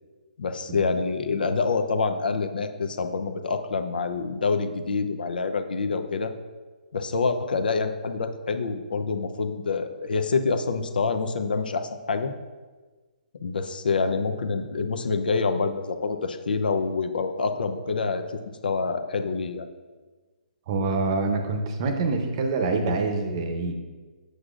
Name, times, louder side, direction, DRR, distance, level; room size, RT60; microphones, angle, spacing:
voice 1, 0.4-6.3 6.9-12.3 13.4-19.7, left 4 dB, 80° left, 8 dB, 0.7 m, -26 dB
voice 2, 20.7-23.7, right 3 dB, 35° right, 5 dB, 0.7 m, -26 dB
8.1 x 6.3 x 2.5 m, 1.3 s
hypercardioid pair, 165°, 5 cm